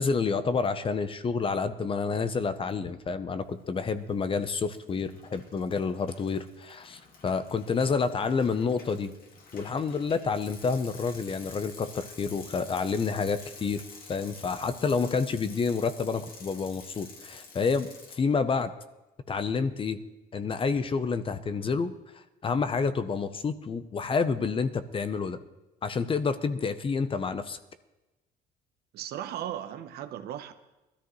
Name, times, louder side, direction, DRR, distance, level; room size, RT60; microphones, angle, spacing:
voice 1, 0.0-9.1 9.5-13.8 14.1-18.7 19.3-20.0 20.3-25.4 25.8-27.6, left 5 dB, 30° left, 12 dB, 0.8 m, -29 dB
Bicycle, 3.7-4.1 4.4-18.2, left 4 dB, 60° left, 2.3 m, -49 dB
voice 2, 28.9-30.5, right 11 dB, 70° right, 9 dB, 1.0 m, -36 dB
19.5 x 13.5 x 3.2 m, 1.0 s
cardioid pair, 110°, 17 cm